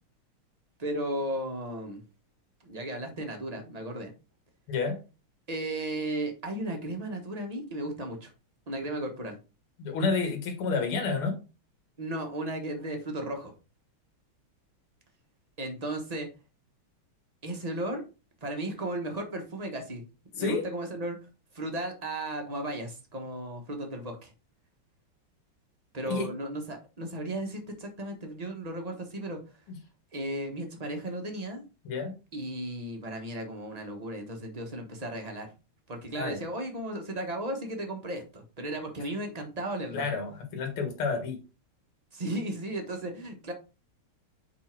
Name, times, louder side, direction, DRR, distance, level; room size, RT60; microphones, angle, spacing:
voice 1, 0.8-2.0 2.6-4.1 5.5-8.3 8.7-9.4 12.0-13.5 15.6-16.3 17.4-18.0 18.4-20.0 20.4-21.2 21.5-24.3 25.9-29.4 30.1-31.6 32.3-35.5 35.9-40.0 42.1-43.5, right 1 dB, 25° right, 4 dB, 0.8 m, -35 dB
voice 2, 4.7-5.0 9.8-11.4 20.4-20.6 26.1-26.3 31.8-32.1 36.2-36.4 39.9-41.4, left 4 dB, 80° left, 5 dB, 2.3 m, -29 dB
5.5 x 4.2 x 4.4 m, 0.31 s
omnidirectional pair, 2.4 m